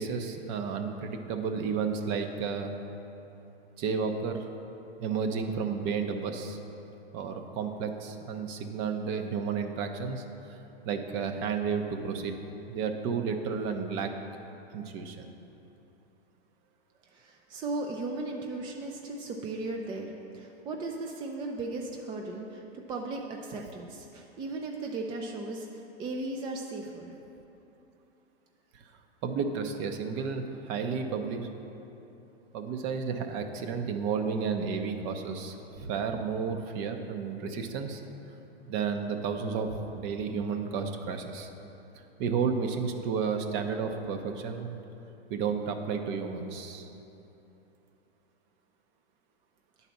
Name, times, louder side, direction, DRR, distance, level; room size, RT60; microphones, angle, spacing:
voice 1, 0.0-2.7 3.8-4.4 5.0-6.6 7.1-10.2 10.5-10.6 10.8-12.4 12.7-14.1 14.7-15.2 23.5-23.6 29.2-31.5 32.5-38.0 38.7-41.5 42.2-44.7 45.3-46.9, right 5 dB, 40° right, 6 dB, 0.7 m, -32 dB
voice 2, 17.1-25.7 26.0-27.1, right 2 dB, 15° right, 1 dB, 0.3 m, -36 dB
9.9 x 4.1 x 5.8 m, 3.0 s
hypercardioid pair, 115°, 32 cm